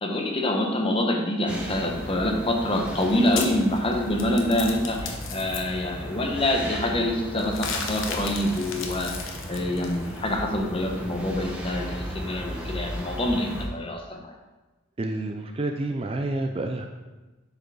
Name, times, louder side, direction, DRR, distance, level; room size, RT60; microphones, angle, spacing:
voice 1, 0.0-14.3, left 1 dB, 25° left, 1 dB, 0.9 m, -26 dB
sound 1, 1.5-13.7, equal, 5° right, 0.9 m, -36 dB
sound 2, 2.8-5.6 7.4-10.4, left 5 dB, 60° left, 0.9 m, -35 dB
voice 2, 15.0-16.9, right 2 dB, 25° right, 4 dB, 0.4 m, -29 dB
7.7 x 4.7 x 4.8 m, 1.1 s
head